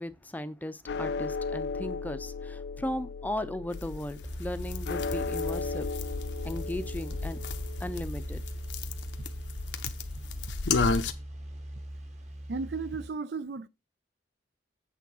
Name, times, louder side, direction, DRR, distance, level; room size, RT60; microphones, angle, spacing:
voice 1, 0.0-5.9 6.4-7.4 7.8-8.4, left 1 dB, 10° left, 0.5 m, -36 dB
sound 1, 0.9-11.3, left 4 dB, 70° left, 0.4 m, -38 dB
sound 2, 3.7-11.1, left 4 dB, 90° left, 0.8 m, -34 dB
sound 3, 4.2-13.1, right 1 dB, 40° right, 1.4 m, -40 dB
voice 2, 12.5-13.7, right 4 dB, 65° right, 0.5 m, -34 dB
8.3 x 3.7 x 6.1 m
head